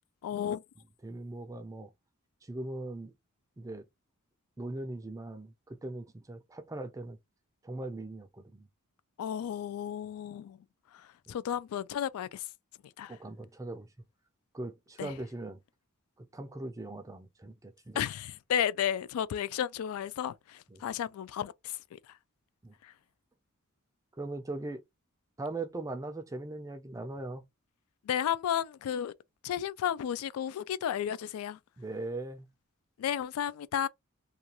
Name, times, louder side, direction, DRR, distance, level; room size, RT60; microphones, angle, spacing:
voice 1, 0.2-0.6 9.2-10.6 11.3-12.4 13.0-13.2 15.0-15.1 18.0-21.5 28.1-29.1 29.4-31.6 33.0-33.9, left 9 dB, 80° left, 0.3 m, -33 dB
voice 2, 1.0-1.9 2.5-3.1 3.6-3.8 4.6-7.2 7.6-8.7 11.3-11.4 13.1-13.9 14.5-15.6 16.3-18.1 20.7-20.8 22.6-22.7 24.2-24.8 25.4-27.5 31.8-32.5, right 2 dB, 15° right, 0.4 m, -40 dB
2.4 x 2.3 x 2.8 m
head